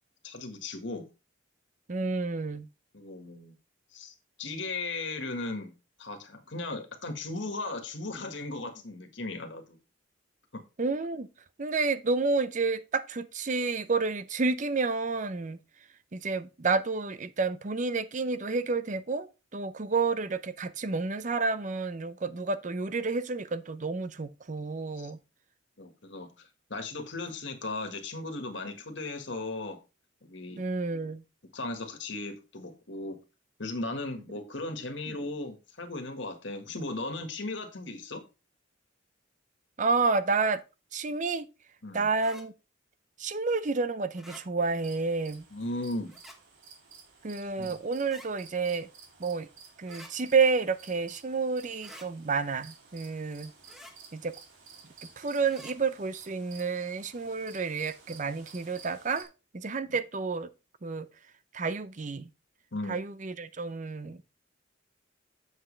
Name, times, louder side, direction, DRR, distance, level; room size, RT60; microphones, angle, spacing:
voice 1, 0.2-1.0 2.9-3.5 3.9-5.7 6.0-9.8 10.5-10.6 25.0-25.1 25.8-29.8 30.2-30.6 31.5-33.2 33.6-38.2 41.8-42.1 45.5-46.1 47.6-47.8 59.8-60.0 62.7-63.0, left 2 dB, 70° left, 1.7 m, -37 dB
voice 2, 1.9-2.7 10.8-11.3 11.6-15.6 16.1-25.2 30.6-31.2 39.8-40.6 40.9-41.5 41.9-42.5 43.2-45.4 47.2-48.9 49.2-49.5 49.8-53.5 54.1-54.3 55.2-60.5 60.8-61.1 61.5-62.3 62.9-64.2, right 4 dB, 40° right, 0.6 m, -30 dB
sound 1, 42.1-42.4 44.1-44.4 46.1-46.4 48.0-48.3 49.8-50.1 51.8-52.1 53.6-53.9 55.4-55.7, left 1 dB, ahead, 1.2 m, -49 dB
sound 2, 44.8-59.2, right 5 dB, 80° right, 2.4 m, -53 dB
7.7 x 7.4 x 3.3 m
head